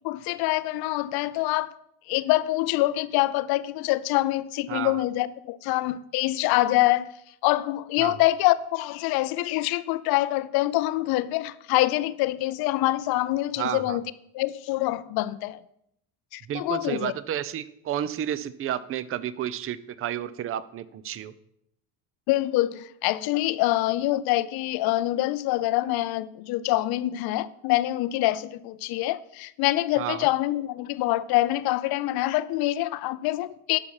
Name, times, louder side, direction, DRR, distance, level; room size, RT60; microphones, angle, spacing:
voice 1, 0.0-1.7 2.1-7.1 7.4-14.0 14.3-15.6 16.3-17.1 22.3-33.8, left 16 dB, 55° left, 0.6 m, -25 dB
voice 2, 4.7-5.0 8.0-8.2 13.6-14.0 16.5-21.3 30.0-30.3, right 10 dB, 30° right, 0.5 m, -31 dB
11.5 x 5.7 x 4.8 m
supercardioid pair, 100°, 45 cm